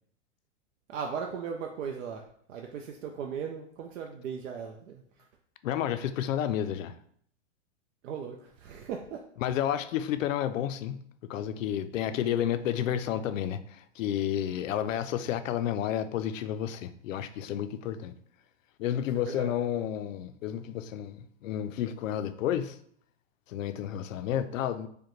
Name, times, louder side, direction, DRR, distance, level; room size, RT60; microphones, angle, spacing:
voice 1, 0.9-2.2 2.5-5.0 8.0-9.2 19.2-19.5, right 6 dB, 85° right, 0.6 m, -37 dB
voice 2, 5.6-6.9 9.4-18.1 18.8-22.8 23.5-24.9, left 10 dB, 90° left, 0.5 m, -31 dB
5.0 x 2.2 x 3.0 m
supercardioid pair, 170°, 38 cm